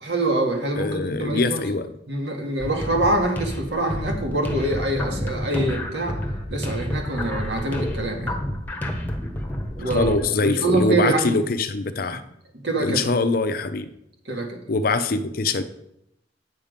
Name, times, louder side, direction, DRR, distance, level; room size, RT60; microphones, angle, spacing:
voice 1, 0.0-1.6 2.1-6.2 6.5-8.4 9.8-10.1 10.4-11.5 12.6-13.2 14.3-14.6, right 2 dB, 65° right, 2 dB, 1.9 m, -25 dB
voice 2, 0.8-1.9 9.9-12.2 12.8-13.9 14.7-15.6, left 3 dB, 50° left, 11 dB, 0.6 m, -23 dB
sound 1, 2.6-10.3, equal, 10° left, 1.1 m, -30 dB
8.4 x 7.3 x 5.1 m, 0.79 s
head